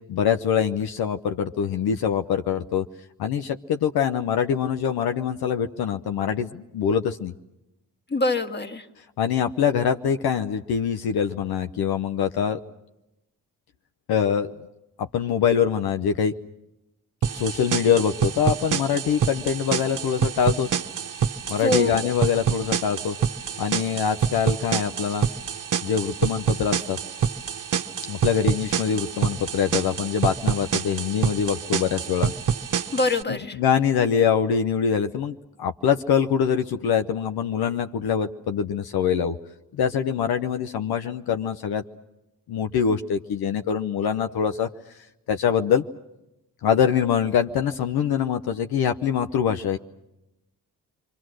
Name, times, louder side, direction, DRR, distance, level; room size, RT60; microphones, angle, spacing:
voice 1, 0.1-2.8 3.2-7.3 9.2-12.6 14.1-14.5 15.0-16.3 17.3-20.8 21.5-23.2 23.6-25.3 25.8-27.0 28.1-32.3 33.3-39.4 39.7-41.8 42.5-44.7 45.3-45.8 46.6-49.8, left 7 dB, 70° left, 8 dB, 0.9 m, -24 dB
voice 2, 8.1-8.9 21.6-22.1 32.9-33.6, left 3 dB, 25° left, 7 dB, 1.8 m, -24 dB
sound 1, 17.2-33.2, right 7 dB, 50° right, 1.1 m, -27 dB
29.5 x 24.0 x 6.3 m, 0.89 s
supercardioid pair, 50°, 39 cm